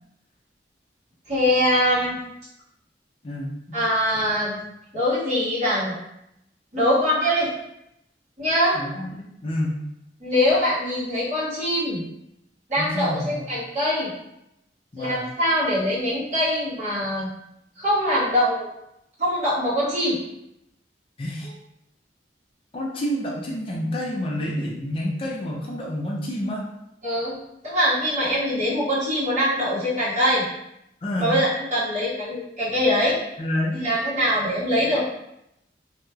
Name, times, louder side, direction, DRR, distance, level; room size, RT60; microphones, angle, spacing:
voice 1, 1.3-2.2 3.7-4.6 4.9-5.9 6.7-7.5 8.4-8.8 10.2-12.0 12.7-14.1 15.0-17.3 17.8-18.7 19.2-20.2 27.0-27.4 27.6-30.4 31.2-33.2 33.7-35.0, equal, 40° right, -10 dB, 1.5 m, -23 dB
voice 2, 3.2-3.8 4.1-4.3 8.7-9.8 12.8-13.5 14.9-15.3 21.2-21.5 22.7-26.6 31.0-31.4 33.4-33.8, left 1 dB, 30° left, -3 dB, 0.4 m, -29 dB
2.9 x 2.8 x 2.3 m, 0.83 s
head